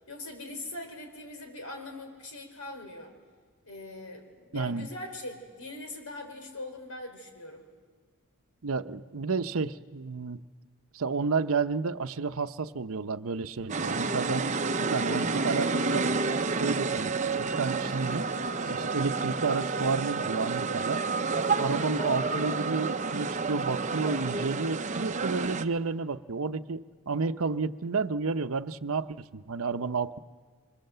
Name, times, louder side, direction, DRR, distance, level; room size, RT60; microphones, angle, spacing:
voice 1, 0.1-3.1 3.6-7.6 21.4-21.7, left 2 dB, 75° left, 5 dB, 4.4 m, -41 dB
voice 2, 4.5-4.9 8.6-10.4 10.9-16.2 16.5-18.3 18.7-21.0 21.6-30.2, right 4 dB, 70° right, 11 dB, 0.8 m, -31 dB
sound 1, 13.7-25.6, right 4 dB, 35° right, 0.8 m, -30 dB
27.0 x 25.0 x 7.9 m, 1.5 s
head